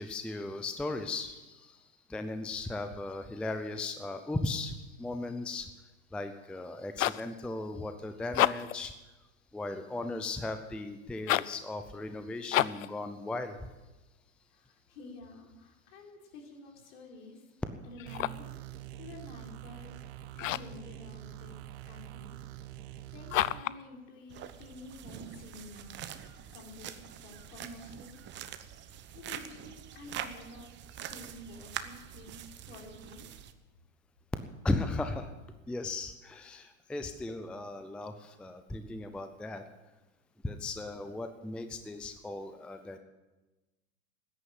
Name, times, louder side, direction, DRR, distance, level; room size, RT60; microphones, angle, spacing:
voice 1, 0.0-5.7 6.1-8.9 9.5-13.7 34.6-35.3 35.7-39.6 40.4-43.0, left 2 dB, 5° left, 8 dB, 0.5 m, -37 dB
sound 1, 6.7-7.3 8.2-8.8 11.2-11.6 12.5-12.9 18.0-18.5 20.4-20.8 23.3-23.8, left 14 dB, 75° left, 0.6 m, -30 dB
voice 2, 14.5-17.4 17.8-20.0 20.3-21.6 21.9-22.3 23.1-26.9 27.2-28.2 28.7-28.8 29.1-33.3, left 2 dB, 60° left, 1 dB, 4.0 m, -50 dB
sound 2, 18.1-23.6, right 14 dB, 50° right, 1.0 m, -45 dB
sound 3, 24.3-33.5, right 10 dB, 30° right, 0.9 m, -44 dB
14.0 x 10.0 x 7.7 m, 1.1 s
hypercardioid pair, 115°, 39 cm